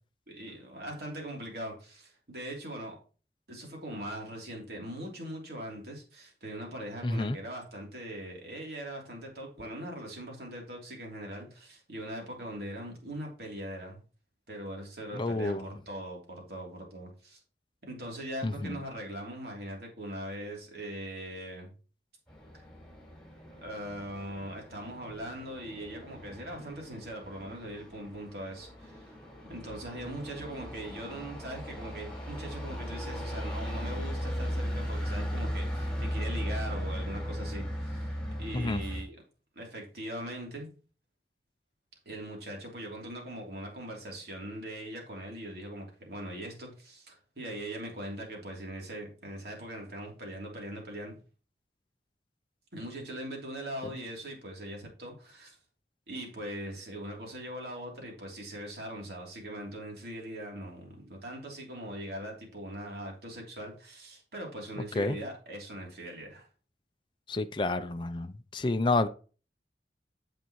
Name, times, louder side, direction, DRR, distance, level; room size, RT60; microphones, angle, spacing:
voice 1, 0.3-3.0 3.5-14.0 14.5-17.4 17.9-21.7 23.6-29.2 29.4-39.2 39.5-40.7 42.0-51.1 52.7-55.6 56.1-66.5, right 1 dB, 65° right, 3.1 m, -41 dB
voice 2, 7.0-7.4 15.1-15.7 18.4-18.8 38.5-38.8 53.8-53.9 65.0-65.2 67.3-69.1, left 2 dB, 25° left, 0.5 m, -29 dB
sound 1, 22.3-39.0, equal, 5° left, 4.0 m, -37 dB
9.5 x 7.4 x 3.1 m
head